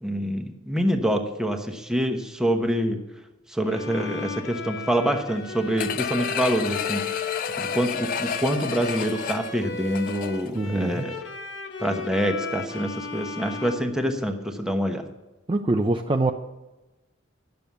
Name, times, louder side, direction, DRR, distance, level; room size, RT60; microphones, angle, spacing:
voice 1, 0.0-3.0 3.5-7.2 7.6-11.2 11.8-15.0, equal, 5° right, 4 dB, 1.0 m, -26 dB
Bowed string instrument, 3.6-14.6, left 3 dB, 65° left, 1.0 m, -36 dB
sound 1, 5.8-10.6 11.0-11.1, left 9 dB, 45° left, 0.3 m, -31 dB
voice 2, 10.5-11.2 15.5-16.3, right 2 dB, 25° right, 5 dB, 0.5 m, -24 dB
10.5 x 7.0 x 7.1 m, 1.1 s
head